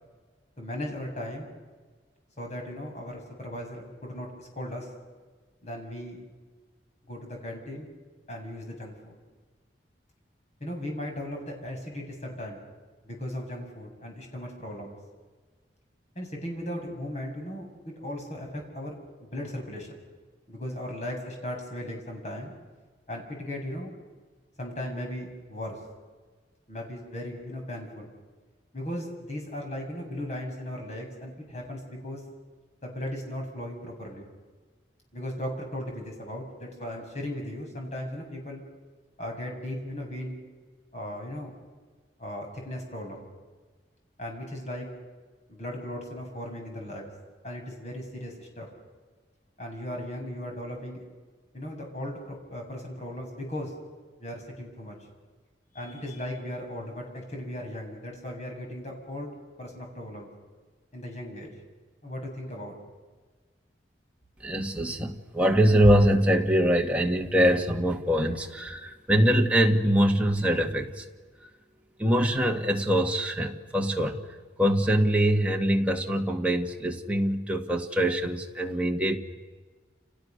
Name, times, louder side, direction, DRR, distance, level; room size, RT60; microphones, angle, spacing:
voice 1, 0.6-1.5 2.4-4.9 5.6-6.3 7.1-7.9 8.3-9.2 10.6-12.6 13.0-15.0 16.2-17.7 18.0-18.9 19.2-19.9 20.5-22.5 23.1-23.9 24.6-25.8 26.7-28.1 28.7-32.2 32.8-34.3 35.1-38.6 39.2-40.4 40.9-41.6 42.2-43.3 44.2-44.9 45.5-47.0 47.4-48.7 49.6-51.0 51.5-53.7 54.2-55.0 55.7-59.3 59.6-60.3 60.9-61.5 62.0-62.7, left 1 dB, 40° left, 1 dB, 7.3 m, -37 dB
voice 2, 64.4-71.0 72.0-74.2 74.6-79.2, equal, 10° right, 1 dB, 1.9 m, -23 dB
30.0 x 29.5 x 6.7 m, 1.4 s
head